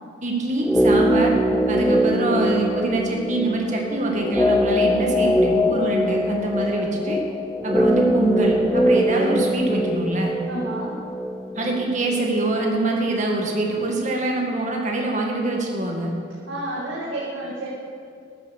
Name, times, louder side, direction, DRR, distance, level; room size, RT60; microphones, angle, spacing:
voice 1, 0.2-1.4 1.7-7.2 7.6-10.3 11.5-16.1, right 2 dB, 40° right, 0 dB, 2.1 m, -24 dB
sound 1, 0.6-12.7 13.0-13.1, equal, 5° left, 0.5 m, -22 dB
voice 2, 10.5-11.0 16.5-17.7, right 1 dB, 75° right, -6 dB, 2.4 m, -30 dB
13.5 x 10.5 x 6.7 m, 2.4 s
head